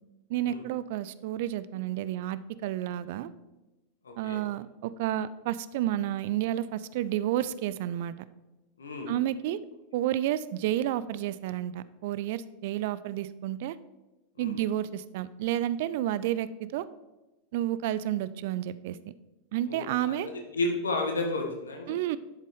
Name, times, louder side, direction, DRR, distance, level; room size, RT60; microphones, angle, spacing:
voice 1, 0.3-3.3 4.2-8.1 9.1-9.6 9.9-13.8 14.4-16.8 17.5-19.0 19.5-20.3 21.9-22.2, right 12 dB, 50° right, 16 dB, 0.4 m, -30 dB
voice 2, 4.0-4.4 8.8-9.1 14.4-14.5 19.7-20.2 20.5-22.0, left 2 dB, 70° left, 2 dB, 1.8 m, -32 dB
11.5 x 7.2 x 3.7 m, 1.1 s
figure-of-eight pair, 90°, 0 cm